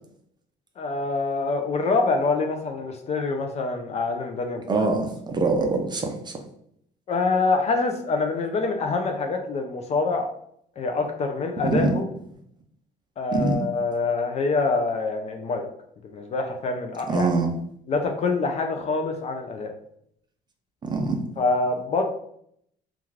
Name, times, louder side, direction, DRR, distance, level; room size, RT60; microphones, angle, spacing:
voice 1, 0.8-4.9 7.1-10.3 10.8-12.0 13.2-15.7 16.1-17.3 17.9-19.7 21.4-22.0, left 3 dB, 40° left, 4 dB, 0.4 m, -25 dB
voice 2, 4.7-6.3 11.6-11.9 13.3-13.6 17.1-17.5 20.8-21.2, right 3 dB, 25° right, 3 dB, 0.4 m, -24 dB
2.4 x 2.3 x 3.1 m, 0.69 s
cardioid pair, 110°, 17 cm